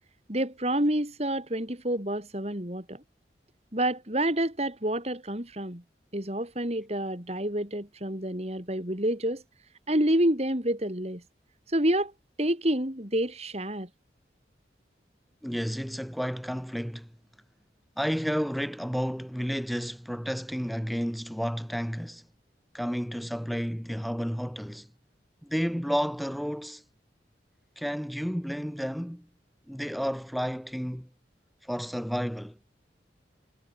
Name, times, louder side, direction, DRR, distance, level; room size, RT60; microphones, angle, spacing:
voice 1, 0.3-3.0 3.7-5.8 6.1-9.4 9.9-11.2 11.7-12.1 12.4-13.9, right 1 dB, 35° right, 4.1 m, -28 dB
voice 2, 15.4-17.1 18.0-22.2 22.7-24.9 25.4-26.8 27.8-29.3 29.7-31.1 31.6-32.6, equal, ahead, 4.1 m, -31 dB
head